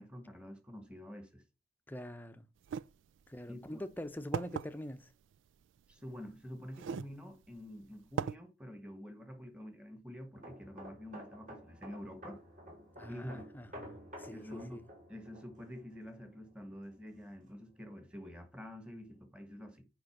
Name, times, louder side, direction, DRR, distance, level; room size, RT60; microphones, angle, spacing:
voice 1, 0.0-1.4 3.5-3.8 5.9-12.4 13.1-13.5 14.3-14.8 15.1-19.9, equal, 5° right, 1.4 m, -48 dB
voice 2, 1.9-2.5 3.3-5.1 13.0-14.9, left 1 dB, 10° left, 0.6 m, -44 dB
sound 1, 2.6-2.8 3.7-3.8 4.3-4.7 5.9-6.0 6.7-7.1 7.6-7.7 8.2-8.3, right 7 dB, 90° right, 0.3 m, -36 dB
sound 2, 10.3-17.8 18.1-18.4, equal, 45° right, 3.5 m, -52 dB
7.9 x 5.1 x 5.9 m
head